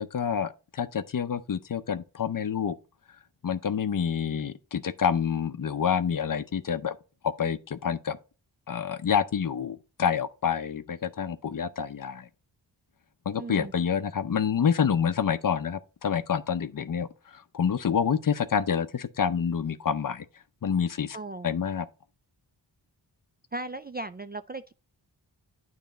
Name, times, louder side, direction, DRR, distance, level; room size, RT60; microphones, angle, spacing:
voice 1, 0.0-2.8 3.4-7.0 7.2-8.2 8.7-12.3 13.3-20.3 20.6-21.2 21.4-21.9, left 7 dB, 45° left, 0.6 m, -28 dB
voice 2, 13.4-13.7 21.1-21.5 23.5-24.7, right 2 dB, 25° right, 0.3 m, -37 dB
9.1 x 3.2 x 5.0 m
cardioid pair, 50°, 45 cm